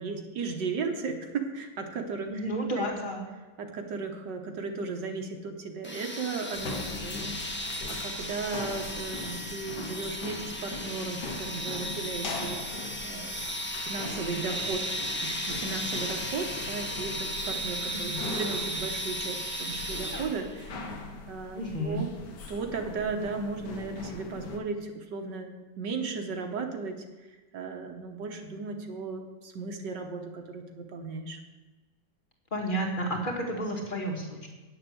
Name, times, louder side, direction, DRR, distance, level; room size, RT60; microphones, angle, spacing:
voice 1, 0.0-2.4 2.8-3.0 3.6-12.6 13.0-13.4 13.8-20.9 21.3-22.1 22.5-27.0 27.5-31.4, right 4 dB, 70° right, 4 dB, 1.7 m, -36 dB
voice 2, 2.3-3.3 17.9-18.3 21.6-22.0 32.5-34.5, right 1 dB, 25° left, 1 dB, 2.0 m, -31 dB
sound 1, 5.8-20.6, equal, 10° left, 0.8 m, -35 dB
sound 2, 6.5-24.6, left 3 dB, 65° left, 1.7 m, -41 dB
9.5 x 7.0 x 7.7 m, 1.2 s
omnidirectional pair, 2.1 m